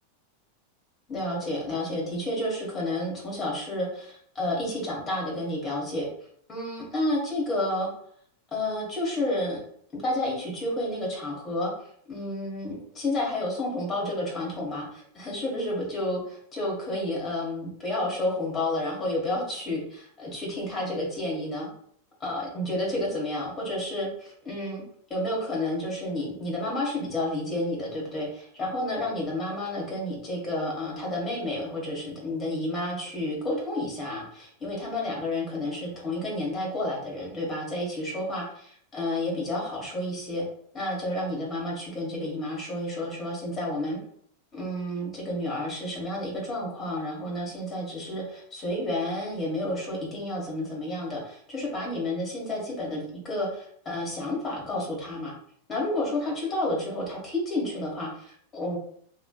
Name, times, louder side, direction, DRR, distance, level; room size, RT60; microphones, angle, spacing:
voice 1, 1.1-6.1 6.5-7.9 8.5-9.6 9.9-21.7 22.2-24.8 25.1-40.4 40.7-44.0 44.5-55.3 55.7-58.8, left 1 dB, 25° left, -3 dB, 1.5 m, -30 dB
3.0 x 2.9 x 2.3 m, 0.62 s
figure-of-eight pair, 90°, 0 cm